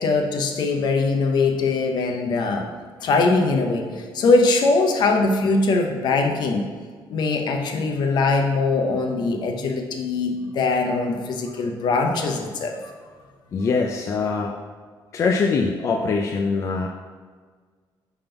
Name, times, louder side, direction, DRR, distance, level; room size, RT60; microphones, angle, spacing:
voice 1, 0.0-2.7 3.0-6.7 7.1-12.9, left 3 dB, 60° left, 3 dB, 0.8 m, -21 dB
voice 2, 13.5-14.6 15.1-16.9, left 4 dB, 35° left, 2 dB, 0.4 m, -23 dB
5.3 x 3.6 x 5.8 m, 1.5 s
cardioid pair, 180°, 9 cm